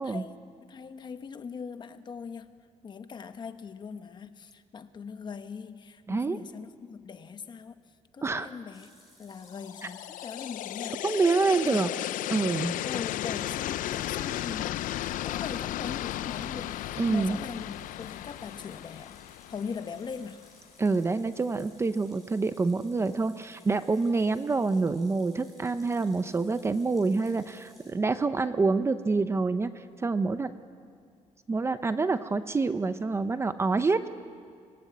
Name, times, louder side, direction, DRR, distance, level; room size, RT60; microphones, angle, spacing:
voice 1, 0.0-2.6 2.8-7.8 8.1-8.9 9.2-11.0 11.6-11.8 12.8-14.8 15.2-19.1 19.5-20.4, left 6 dB, 35° left, 10 dB, 1.1 m, -40 dB
voice 2, 6.1-6.4 8.2-8.5 11.0-11.9 12.3-12.8 17.0-17.4 20.8-30.5 31.5-34.1, right 3 dB, 20° right, 11 dB, 0.6 m, -27 dB
sound 1, 8.7-27.9, left 1 dB, ahead, 7.0 m, -59 dB
sound 2, 9.5-20.5, left 14 dB, 85° left, 0.5 m, -35 dB
25.0 x 19.0 x 9.4 m, 2.2 s
cardioid pair, 160°, 13 cm